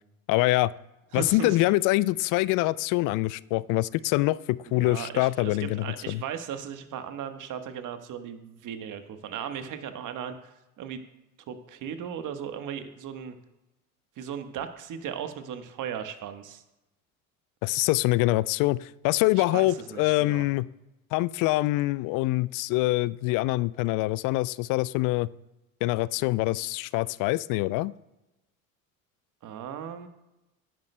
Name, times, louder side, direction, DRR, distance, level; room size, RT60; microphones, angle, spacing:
voice 1, 0.3-0.7 1.1-6.2 17.6-20.7 21.1-25.3 25.8-27.9, left 19 dB, 50° left, 20 dB, 0.4 m, -25 dB
voice 2, 1.1-1.6 4.7-10.3 10.8-11.0 11.5-13.3 14.2-16.6 19.4-20.4 29.4-30.1, right 8 dB, 45° right, 8 dB, 1.3 m, -37 dB
17.0 x 10.5 x 2.2 m, 0.98 s
hypercardioid pair, 65°, 42 cm